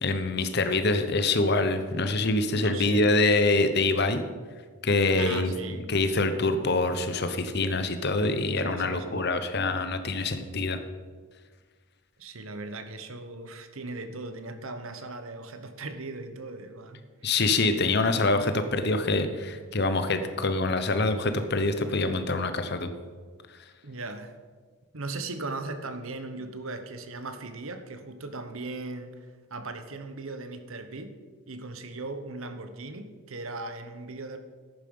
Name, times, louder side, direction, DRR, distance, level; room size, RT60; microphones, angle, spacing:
voice 1, 0.0-4.2 4.8-5.5 5.9-10.8 17.2-22.9, left 2 dB, 50° left, 9 dB, 0.9 m, -25 dB
voice 2, 2.5-3.1 5.2-5.9 8.6-9.2 12.2-17.3 23.8-24.4 24.9-31.1 31.5-34.4, right 3 dB, 70° right, 8 dB, 1.1 m, -38 dB
11.0 x 8.9 x 5.4 m, 1.5 s
head